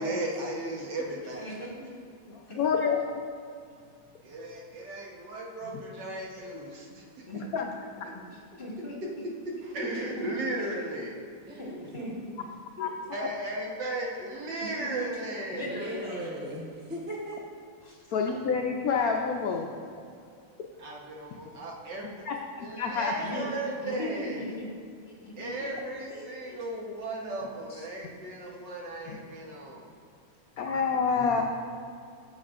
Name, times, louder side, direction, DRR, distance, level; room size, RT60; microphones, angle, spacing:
voice 1, 0.0-1.6 4.2-7.6 8.0-8.1 9.0-9.1 9.5-11.2 13.1-15.7 20.8-22.2 22.6-24.5 25.4-29.9, right 2 dB, 60° right, -2 dB, 1.7 m, -36 dB
voice 2, 1.4-1.7 2.3-2.6 7.3-7.4 8.1-8.9 9.8-10.3 11.6-12.1 12.8-12.9 14.6-15.0 15.5-16.3 17.8-18.0 20.2-20.3 23.2-23.5 23.8-24.7 25.0-25.7 26.1-26.6 27.7-27.8 28.2-28.3, left 1 dB, 30° left, -4 dB, 1.5 m, -39 dB
voice 3, 2.3-3.2 5.7-5.8 7.3-7.7 12.8-12.9 18.1-19.7 22.3-23.1 29.1-29.2 30.6-31.4, left 5 dB, 80° left, 1 dB, 0.8 m, -28 dB
voice 4, 9.8-10.1 11.4-11.7 12.1-12.2 15.5-17.4, right 1 dB, 10° right, -3 dB, 0.4 m, -38 dB
12.5 x 7.1 x 2.5 m, 2.3 s
omnidirectional pair, 2.2 m